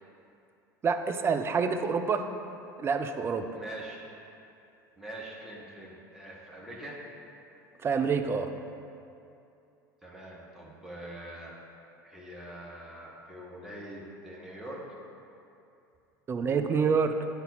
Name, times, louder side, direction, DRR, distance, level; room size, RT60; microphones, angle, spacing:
voice 1, 0.8-2.3 2.8-3.5 7.8-8.5 16.3-17.3, right 5 dB, 20° right, 6 dB, 0.4 m, -27 dB
voice 2, 3.5-4.0 5.0-7.0 10.0-11.5 12.0-14.8, right 1 dB, 5° right, -6 dB, 1.3 m, -43 dB
8.5 x 4.0 x 4.0 m, 2.7 s
figure-of-eight pair, 70°, 11 cm